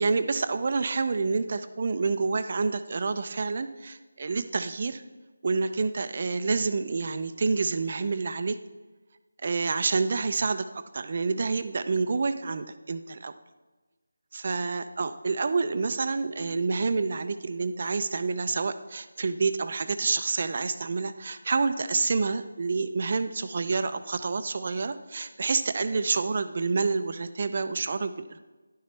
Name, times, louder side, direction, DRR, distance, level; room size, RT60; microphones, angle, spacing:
voice 1, 0.0-5.0 5.4-8.6 9.4-10.7 10.9-13.3 14.3-28.4, right 4 dB, 45° right, 11 dB, 0.5 m, -28 dB
10.5 x 6.7 x 3.3 m, 1.2 s
figure-of-eight pair, 165°, 0 cm